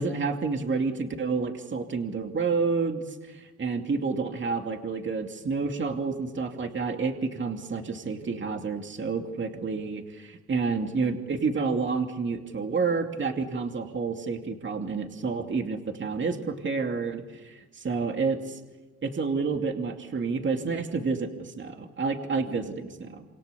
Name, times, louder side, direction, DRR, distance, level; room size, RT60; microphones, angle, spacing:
voice 1, 0.0-18.6 19.0-23.2, right 4 dB, 40° right, 4 dB, 2.6 m, -29 dB
27.5 x 27.0 x 7.0 m, 1.2 s
cardioid pair, 90°, 30 cm